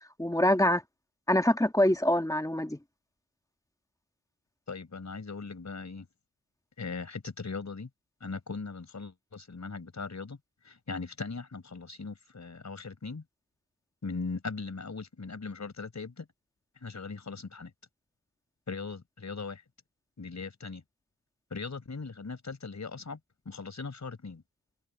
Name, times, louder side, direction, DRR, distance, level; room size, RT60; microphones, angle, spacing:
voice 1, 0.2-0.8 1.3-2.8, left 1 dB, 10° left, 1.7 m, -25 dB
voice 2, 4.7-6.0 6.8-7.9 8.2-10.4 10.6-13.2 14.0-16.2 16.8-17.7 18.7-19.6 20.2-20.8 21.5-23.2 23.4-24.4, left 4 dB, 55° left, 4.8 m, -39 dB
cardioid pair, 65°, 34 cm